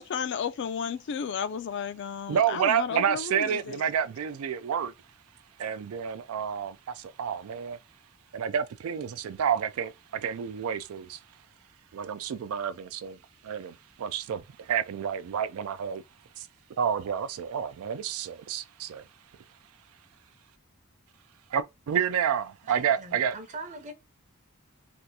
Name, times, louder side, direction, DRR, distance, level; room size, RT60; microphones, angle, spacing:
voice 1, 0.0-3.8, left 7 dB, 55° left, 0.3 m, -33 dB
voice 2, 2.3-4.9 5.6-7.8 8.3-11.2 11.9-13.2 13.4-16.0 16.4-16.5 16.8-19.1 21.5-23.3, right 8 dB, 85° right, 0.4 m, -29 dB
voice 3, 22.6-23.9, right 3 dB, 35° right, 0.7 m, -41 dB
3.4 x 2.5 x 2.7 m
head